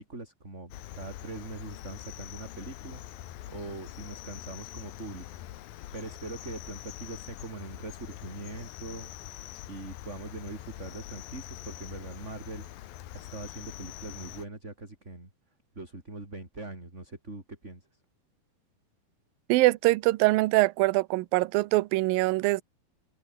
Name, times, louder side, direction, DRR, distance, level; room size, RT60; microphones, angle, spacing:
voice 1, 0.0-3.0 3.5-5.3 5.9-9.1 9.7-12.7 13.1-15.3 15.8-17.9, right 2 dB, 15° right, 4.5 m, -42 dB
Cricket, 0.7-14.5, left 14 dB, 70° left, 2.9 m, -44 dB
voice 2, 19.5-22.6, right 20 dB, 75° right, 2.3 m, -23 dB
omnidirectional pair, 4.5 m